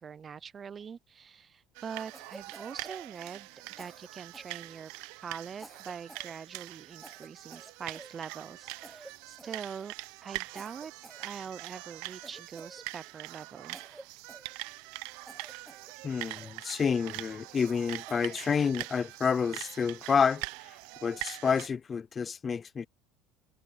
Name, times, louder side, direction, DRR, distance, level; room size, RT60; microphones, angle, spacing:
voice 1, 0.0-3.5 3.8-4.9 5.2-9.9 10.2-10.9 11.2-13.8, right 6 dB, 30° right, 0.7 m, -43 dB
sound 1, 1.7-21.7, right 23 dB, 80° right, 0.8 m, -43 dB
Cough, 2.1-3.5 3.8-5.0 5.5-6.3 6.6-6.7 7.0-8.6 8.8-9.1 9.4-10.0 10.5-11.7 12.2-13.3 13.7-15.0 15.2-15.9 16.4-16.9 17.4-18.3, right 2 dB, 10° right, 1.0 m, -52 dB
voice 2, 16.0-20.8 21.0-22.9, left 6 dB, 30° left, 0.5 m, -29 dB
supercardioid pair, 110°, 0 cm